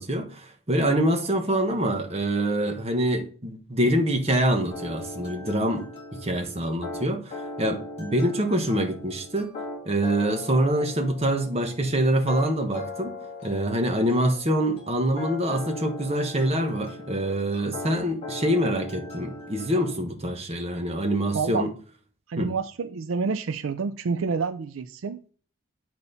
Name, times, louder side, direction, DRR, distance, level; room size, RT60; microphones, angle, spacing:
voice 1, 0.0-5.9 6.1-9.5 9.8-13.1 13.4-21.7 22.4-22.5, right 1 dB, 30° right, 1.2 m, -25 dB
sound 1, 4.7-20.0, left 2 dB, 30° left, 3.0 m, -39 dB
voice 2, 22.3-25.3, right 5 dB, 75° right, 0.4 m, -28 dB
8.8 x 4.3 x 4.0 m
head